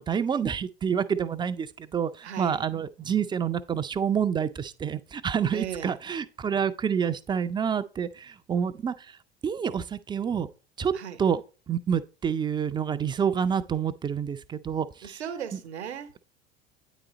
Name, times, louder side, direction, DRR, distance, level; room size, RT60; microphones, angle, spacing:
voice 1, 0.0-9.2 9.4-10.5 10.8-10.9 11.2-11.4 11.7-15.2 15.5-15.6, right 7 dB, 15° right, 0.3 m, -28 dB
voice 2, 2.2-2.6 5.5-6.0 10.9-11.2 15.0-16.2, right 8 dB, 80° right, 0.8 m, -37 dB
9.0 x 4.0 x 3.9 m
figure-of-eight pair, 75°, 33 cm